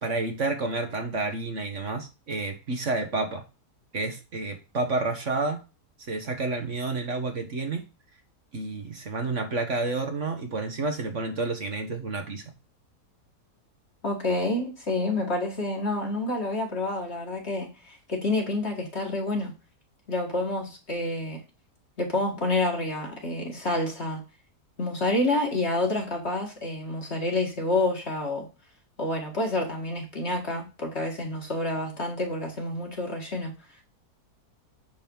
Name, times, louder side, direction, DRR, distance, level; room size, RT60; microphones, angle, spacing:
voice 1, 0.0-3.4 3.9-5.6 6.1-7.8 8.5-12.4, right 3 dB, 50° right, 5 dB, 1.6 m, -30 dB
voice 2, 14.0-19.5 20.1-21.4 22.0-24.2 24.8-28.5 29.0-33.5, left 2 dB, 40° left, 1 dB, 2.3 m, -28 dB
10.5 x 4.1 x 5.5 m, 0.30 s
omnidirectional pair, 1.7 m